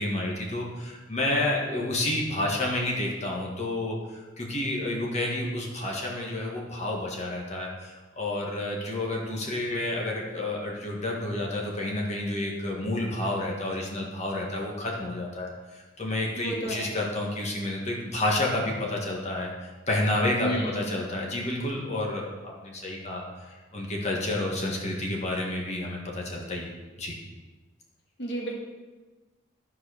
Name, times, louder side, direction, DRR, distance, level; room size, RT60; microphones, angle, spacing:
voice 1, 0.0-27.2, left 1 dB, 35° left, -2 dB, 1.7 m, -30 dB
voice 2, 16.4-16.9 20.4-20.8 28.2-28.5, right 1 dB, 60° left, -1 dB, 2.1 m, -32 dB
13.0 x 4.9 x 6.5 m, 1.3 s
head